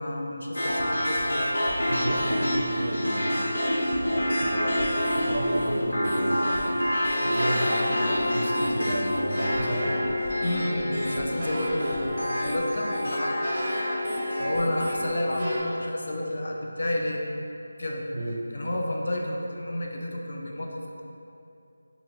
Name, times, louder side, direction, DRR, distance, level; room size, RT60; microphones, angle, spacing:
voice 1, 0.0-1.5 10.4-13.4 14.4-17.2 17.8-18.1 18.5-21.0, left 1 dB, 50° left, 0 dB, 0.4 m, -30 dB
sound 1, 0.5-15.5, equal, 65° left, 0.8 m, -28 dB
voice 2, 1.9-3.5 4.3-6.9 7.2-10.1 18.1-18.4, right 1 dB, 60° right, -1 dB, 0.5 m, -32 dB
sound 2, 4.7-15.6, left 2 dB, ahead, 0.8 m, -33 dB
2.8 x 2.8 x 4.3 m, 2.8 s
figure-of-eight pair, 180°, 0 cm